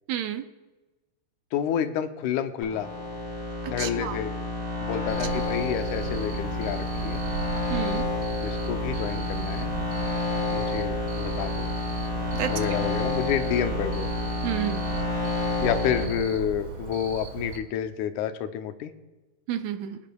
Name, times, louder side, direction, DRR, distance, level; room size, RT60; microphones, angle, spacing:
voice 1, 0.1-0.4 3.8-4.2 7.7-8.0 12.4-12.5 14.4-14.8 19.5-20.0, right 11 dB, 75° right, 8 dB, 1.8 m, -30 dB
voice 2, 1.5-2.9 3.7-4.3 4.8-7.2 8.4-9.7 10.5-11.7 12.5-14.1 15.6-18.9, left 9 dB, 85° left, 9 dB, 2.1 m, -29 dB
sound 1, 2.6-16.0, left 2 dB, 10° left, 3.7 m, -30 dB
Cricket, 5.1-17.6, right 6 dB, 55° right, 1.9 m, -36 dB
23.0 x 10.0 x 2.3 m, 1.2 s
omnidirectional pair, 3.5 m